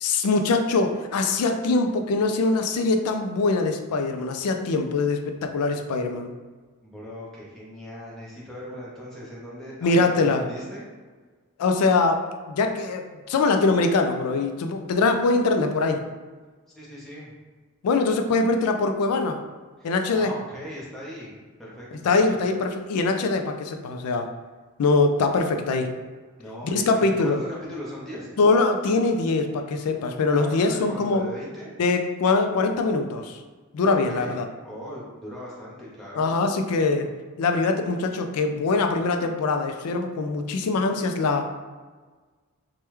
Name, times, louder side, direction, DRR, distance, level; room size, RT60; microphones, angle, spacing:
voice 1, 0.0-6.3 9.8-10.5 11.6-16.0 17.8-19.4 19.8-20.3 22.0-24.3 24.8-25.9 26.6-27.4 28.4-31.2 31.8-33.4 33.7-34.4 36.2-37.1 37.4-41.5, left 3 dB, 85° left, 5 dB, 0.4 m, -23 dB
voice 2, 6.8-10.8 16.7-17.3 19.8-22.1 26.4-28.3 30.3-31.8 33.8-34.4 34.6-36.3, equal, ahead, -7 dB, 0.7 m, -39 dB
3.3 x 2.2 x 3.0 m, 1.4 s
head